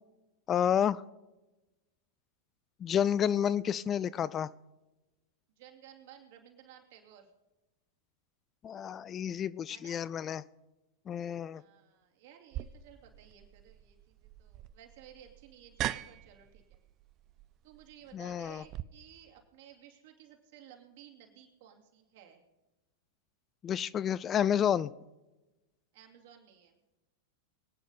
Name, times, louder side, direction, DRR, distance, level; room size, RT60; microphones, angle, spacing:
voice 1, 0.5-1.0 2.8-4.5 8.6-10.4 11.1-11.6 18.1-18.6 23.6-24.9, left 9 dB, 25° left, 18 dB, 0.4 m, -30 dB
voice 2, 5.6-7.3 9.7-10.0 11.5-16.8 17.6-22.4 25.9-26.8, right 10 dB, 55° right, 2 dB, 2.6 m, -56 dB
sound 1, 12.5-18.8, right 13 dB, 35° right, 0.5 m, -42 dB
23.5 x 9.3 x 4.0 m, 1.1 s
figure-of-eight pair, 95°, 0 cm